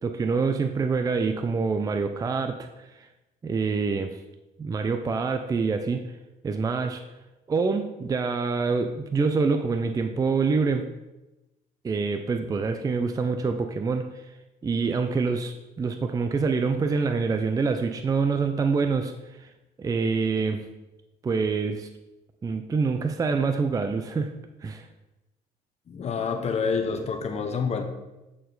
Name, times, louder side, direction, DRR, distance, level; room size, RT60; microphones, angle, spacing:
voice 1, 0.0-3.1 3.4-4.2 4.6-6.0 6.4-7.0 7.5-10.8 11.8-14.0 14.6-19.1 19.4-19.5 19.8-20.6 21.2-21.9 22.4-24.3 24.6-24.9, right 4 dB, 20° right, 7 dB, 0.4 m, -26 dB
voice 2, 25.9-27.8, left 5 dB, 40° left, 6 dB, 1.0 m, -27 dB
8.4 x 4.6 x 3.9 m, 1.0 s
cardioid pair, 110°, 17 cm